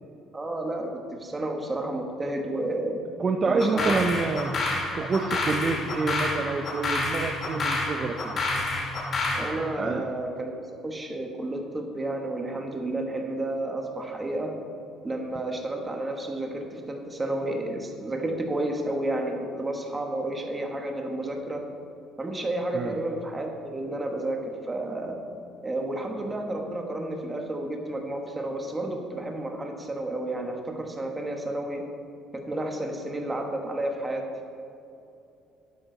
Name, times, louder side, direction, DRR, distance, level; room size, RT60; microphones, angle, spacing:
voice 1, 0.3-3.0 3.5-4.0 9.3-10.6 10.8-14.5 15.0-21.6 22.2-25.2 25.6-31.8 32.4-34.2, right 1 dB, 20° right, 3 dB, 1.4 m, -31 dB
voice 2, 3.2-4.6 4.9-8.4 9.8-10.1 22.7-22.9, right 4 dB, 35° right, 5 dB, 0.6 m, -27 dB
sound 1, 3.6-9.5, left 2 dB, 40° left, 2.4 m, -28 dB
11.5 x 8.9 x 4.0 m, 2.7 s
cardioid pair, 120°, 0 cm